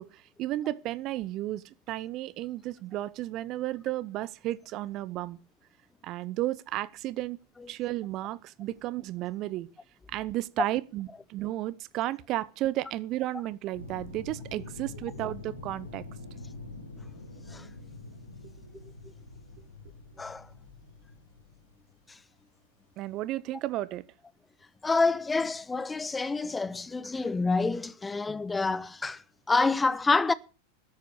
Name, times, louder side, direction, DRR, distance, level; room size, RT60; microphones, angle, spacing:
voice 1, 0.0-5.4 6.0-7.4 7.7-9.7 10.1-16.0 23.0-24.0, right 15 dB, 35° right, 0.8 m, -33 dB
sound 1, 13.7-21.9 23.3-23.4, left 3 dB, 80° left, 3.3 m, -45 dB
voice 2, 24.8-29.2 29.5-30.3, left 3 dB, 10° left, 0.7 m, -27 dB
13.5 x 10.5 x 6.3 m
figure-of-eight pair, 90°, 0 cm